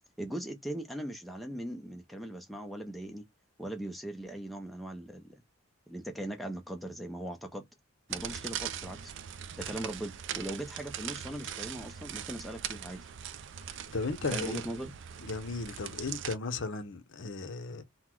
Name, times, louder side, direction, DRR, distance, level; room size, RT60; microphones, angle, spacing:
voice 1, 0.2-3.2 3.6-5.4 5.9-7.6 8.1-9.1 9.6-13.0 14.3-14.9, right 1 dB, ahead, 0.5 m, -39 dB
sound 1, 8.1-16.4, right 9 dB, 60° right, 0.4 m, -40 dB
voice 2, 13.7-14.6 15.2-17.8, left 3 dB, 60° left, 0.7 m, -36 dB
4.0 x 2.1 x 4.3 m
head